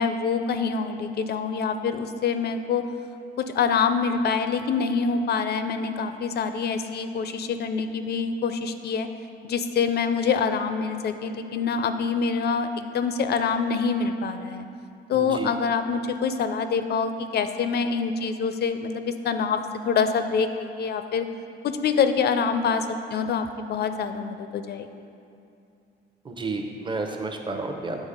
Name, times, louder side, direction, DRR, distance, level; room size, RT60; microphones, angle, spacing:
voice 1, 0.0-2.8 3.4-9.1 9.4-14.7 15.1-19.6 19.8-21.2 21.6-22.9 23.1-24.9, left 5 dB, 55° left, 9 dB, 0.4 m, -25 dB
voice 2, 15.1-15.5 26.3-28.0, right 3 dB, 25° right, 3 dB, 0.7 m, -31 dB
7.2 x 4.0 x 5.1 m, 2.6 s
cardioid pair, 90°, 20 cm